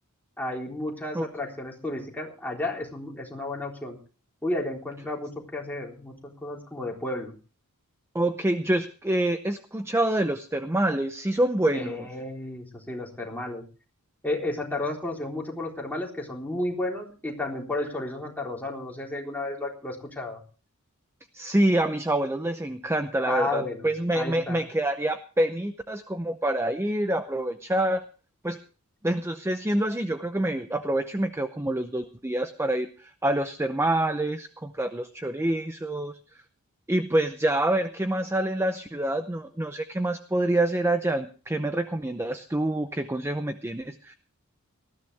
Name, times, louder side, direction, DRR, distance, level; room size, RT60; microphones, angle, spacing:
voice 1, 0.4-4.0 4.4-6.1 6.4-7.3 11.7-13.6 14.2-20.4 23.2-23.9 24.2-24.6, left 2 dB, 10° left, -2 dB, 3.8 m, -32 dB
voice 2, 8.1-12.1 21.3-28.0 28.4-28.6 29.0-36.2 36.9-44.1, right 1 dB, 10° right, 9 dB, 0.7 m, -26 dB
19.5 x 14.0 x 3.4 m, 0.37 s
head